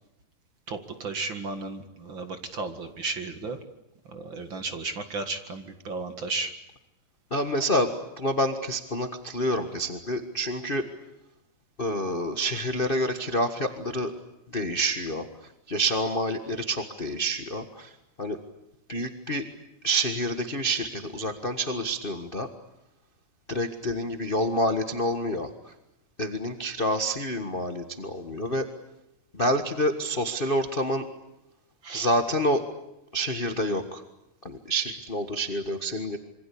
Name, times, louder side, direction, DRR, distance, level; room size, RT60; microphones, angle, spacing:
voice 1, 0.7-3.6 4.1-6.5 31.8-32.1, right 3 dB, 40° right, 7 dB, 2.3 m, -34 dB
voice 2, 7.3-10.9 11.8-14.1 14.5-15.3 15.7-17.9 18.2-18.4 18.9-19.5 19.8-22.5 23.5-25.7 26.2-28.7 29.3-31.1 31.9-32.6 33.1-34.0 34.4-36.2, equal, 30° left, 6 dB, 0.9 m, -28 dB
27.0 x 24.5 x 8.6 m, 0.89 s
omnidirectional pair, 3.6 m